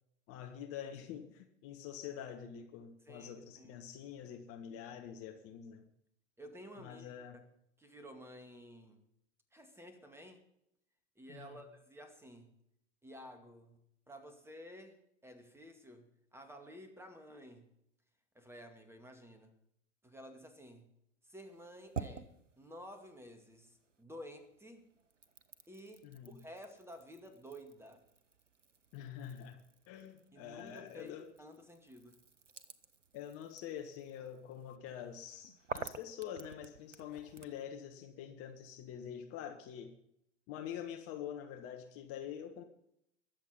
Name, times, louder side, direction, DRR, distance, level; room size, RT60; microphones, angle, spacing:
voice 1, 0.3-5.9 6.8-7.4 11.3-11.6 26.0-26.4 28.9-31.3 33.1-39.9 40.5-42.6, left 9 dB, 40° left, 6 dB, 1.5 m, -46 dB
voice 2, 3.1-3.8 6.4-7.4 7.8-9.0 9.5-10.4 11.2-12.5 13.0-13.8 14.1-15.0 15.2-17.6 18.3-19.5 20.0-20.9 21.2-22.3 22.6-24.8 25.7-28.0 30.3-32.2, equal, 5° right, 7 dB, 2.2 m, -52 dB
sound 1, 21.4-24.0 24.4-37.6, right 5 dB, 85° right, 0.8 m, -51 dB
21.5 x 7.5 x 5.6 m, 0.76 s
figure-of-eight pair, 85°, 36 cm